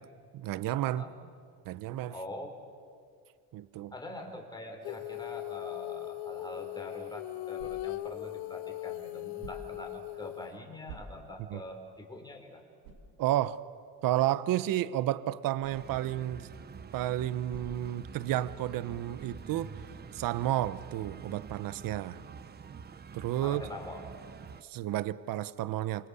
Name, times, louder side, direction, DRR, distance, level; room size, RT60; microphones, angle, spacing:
voice 1, 0.3-1.0 1.6-2.1 3.5-3.9 11.5-11.6 13.2-13.6 14.0-16.5 16.9-19.8 20.1-22.2 23.1-23.6 24.6-26.1, right 13 dB, 50° right, 16 dB, 1.0 m, -31 dB
voice 2, 2.1-2.5 3.9-12.6 23.4-24.0, left 1 dB, 10° left, 3 dB, 4.7 m, -44 dB
Female singing, 4.8-10.6, left 19 dB, 80° left, 0.6 m, -39 dB
sound 1, 7.5-8.1 9.4-9.9 10.8-11.5 12.0-12.1 12.8-13.2 15.6-15.8 17.5-18.0 19.1-19.5, right 4 dB, 85° right, 4.8 m, -48 dB
sound 2, 15.7-24.6, right 6 dB, 25° right, 0.9 m, -47 dB
27.5 x 25.0 x 8.3 m, 2.2 s
cardioid pair, 125°, 42 cm